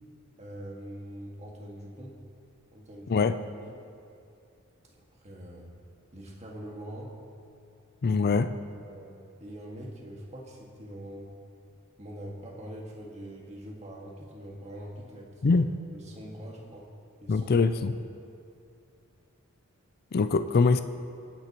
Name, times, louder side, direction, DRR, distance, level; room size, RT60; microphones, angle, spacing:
voice 1, 0.4-2.2 2.7-3.2 3.6-3.8 4.8-5.7 6.1-7.1 8.6-11.3 12.0-15.6 15.9-16.9 17.2-17.5, right 1 dB, 30° right, -1 dB, 1.8 m, -43 dB
voice 2, 8.0-8.5 15.4-15.7 17.3-17.9 20.1-20.8, left 4 dB, 45° left, 10 dB, 0.4 m, -23 dB
28.0 x 9.6 x 3.0 m, 2.5 s
head